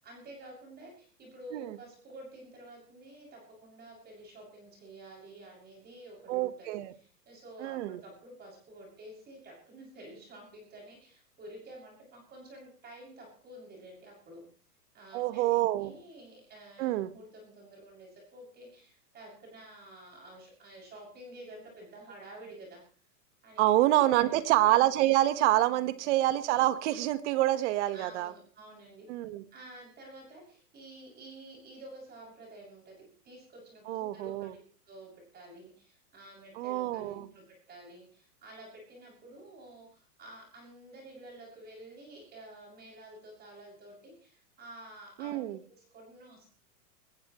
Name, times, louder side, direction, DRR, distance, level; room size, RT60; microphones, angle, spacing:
voice 1, 0.0-6.7 7.0-14.4 14.9-22.8 23.4-24.5 25.6-26.0 27.9-29.1 29.5-34.6 34.9-46.5, right 1 dB, 20° right, -2 dB, 7.0 m, -50 dB
voice 2, 6.3-6.9 7.6-8.0 15.1-15.9 16.8-17.1 23.6-28.3 29.1-29.4 33.9-34.5 36.5-37.3 45.2-45.6, right 15 dB, 45° right, 13 dB, 1.5 m, -27 dB
20.5 x 19.5 x 3.1 m, 0.42 s
supercardioid pair, 150°, 48 cm